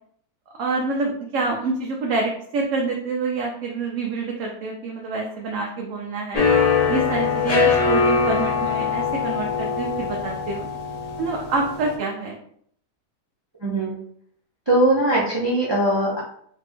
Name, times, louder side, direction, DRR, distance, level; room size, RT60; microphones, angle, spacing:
voice 1, 0.6-6.4 6.9-10.7 11.2-12.4, right 3 dB, 65° right, 0 dB, 0.8 m, -27 dB
sound 1, 6.3-12.0, left 5 dB, 50° left, 0.4 m, -22 dB
voice 2, 13.6-13.9 14.7-16.2, right 1 dB, 40° right, -5 dB, 0.3 m, -20 dB
3.3 x 2.5 x 3.5 m, 0.64 s
omnidirectional pair, 1.7 m